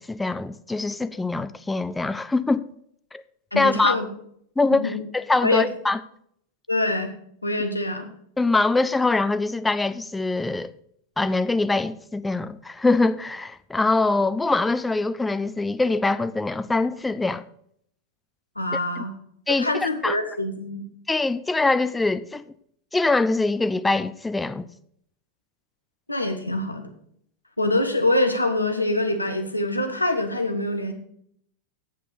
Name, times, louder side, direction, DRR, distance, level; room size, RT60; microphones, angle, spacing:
voice 1, 0.0-2.7 3.1-3.2 3.6-3.9 4.6-6.0 8.4-10.7 11.2-17.4 19.0-19.1 19.5-20.2 21.1-22.4 22.9-24.7, left 3 dB, 10° left, 0.4 m, -23 dB
voice 2, 3.5-4.1 4.7-5.0 5.4-5.7 6.7-7.1 7.4-8.1 18.6-19.1 19.5-20.8 26.1-26.9 27.6-30.9, left 2 dB, 85° left, 1.2 m, -24 dB
8.2 x 7.3 x 5.6 m
figure-of-eight pair, 90°, 0 cm